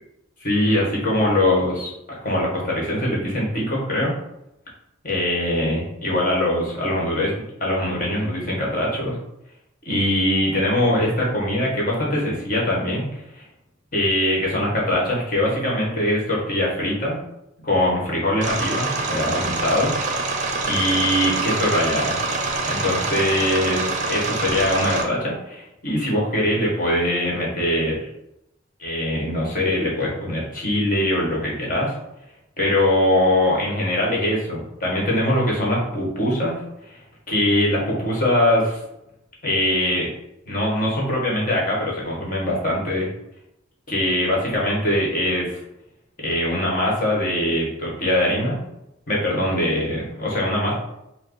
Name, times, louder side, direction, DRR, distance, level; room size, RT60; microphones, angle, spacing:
voice 1, 0.4-4.1 5.0-7.3 7.6-9.2 9.8-13.1 13.4-13.5 13.9-17.2 17.6-19.9 20.2-20.4 20.6-22.2 22.6-28.1 28.8-31.9 32.6-36.6 36.9-37.0 37.3-38.8 39.4-40.1 40.5-43.1 43.9-45.6 46.2-48.6 49.1-50.7, left 1 dB, 45° left, -3 dB, 1.4 m, -22 dB
sound 1, 18.4-25.0, right 3 dB, 40° right, 0.6 m, -25 dB
4.3 x 2.2 x 4.0 m, 0.83 s
head